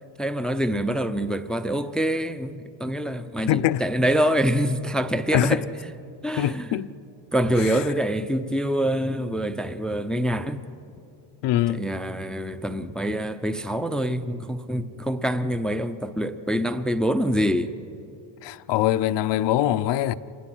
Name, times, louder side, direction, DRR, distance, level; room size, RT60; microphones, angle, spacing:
voice 1, 0.2-5.7 6.2-6.8 7.3-10.6 11.7-17.7, equal, ahead, 0.5 m, -25 dB
voice 2, 3.5-3.8 5.3-5.6 6.4-6.9 11.4-11.9 18.4-20.1, left 13 dB, 65° left, 0.7 m, -23 dB
26.5 x 20.0 x 6.1 m
cardioid pair, 125°, 46 cm